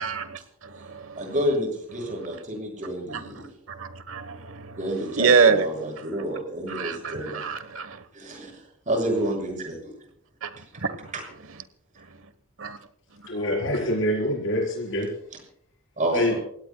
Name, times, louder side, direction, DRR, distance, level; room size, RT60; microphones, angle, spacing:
voice 1, 0.0-1.3 2.2-2.3 2.8-4.8 5.1-5.7 6.7-8.0 10.4-11.1 12.6-12.8, right 5 dB, 80° right, 13 dB, 1.2 m, -26 dB
voice 2, 1.2-3.5 4.8-7.4 8.1-8.6 8.9-9.9 11.1-11.2 16.0-16.4, right 1 dB, 40° right, 1 dB, 6.5 m, -29 dB
voice 3, 13.3-15.1 16.1-16.4, left 1 dB, 65° left, -1 dB, 4.5 m, -25 dB
28.5 x 17.0 x 2.3 m, 0.65 s
head